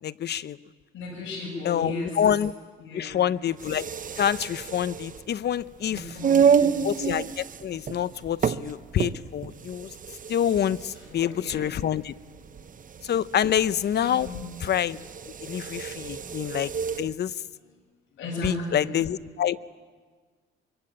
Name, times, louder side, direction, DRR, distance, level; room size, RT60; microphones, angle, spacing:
voice 1, 0.0-0.6 1.6-2.5 2.9-3.8 4.2-6.1 6.8-9.9 10.3-12.1 13.0-14.3 14.6-15.0 15.2-16.7 17.0-17.4 18.4-19.7, left 9 dB, 55° left, 17 dB, 0.8 m, -27 dB
voice 2, 0.9-2.2 2.8-3.2 5.9-6.9 10.9-11.8 12.3-12.7 14.1-14.5 18.1-18.9, left 2 dB, 75° left, -1 dB, 7.9 m, -37 dB
sound 1, 3.5-17.1, right 7 dB, 40° right, 1.0 m, -29 dB
24.0 x 24.0 x 8.8 m, 1.5 s
cardioid pair, 90°, 20 cm